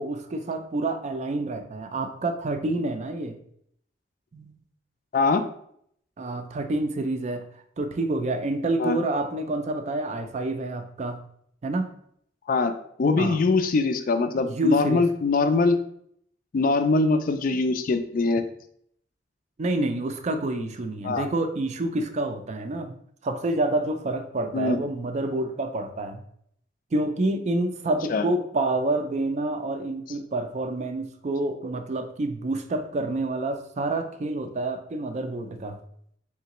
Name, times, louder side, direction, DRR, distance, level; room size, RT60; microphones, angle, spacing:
voice 1, 0.0-3.4 4.3-4.6 6.2-7.4 7.8-11.2 11.6-11.9 13.2-13.4 14.4-15.1 19.6-26.2 26.9-35.8, right 2 dB, 40° right, 8 dB, 0.4 m, -28 dB
voice 2, 12.5-15.8 16.5-18.5 21.0-21.3 24.5-24.8 28.1-28.3, left 3 dB, 50° left, 9 dB, 0.3 m, -23 dB
3.7 x 3.3 x 2.9 m, 0.68 s
head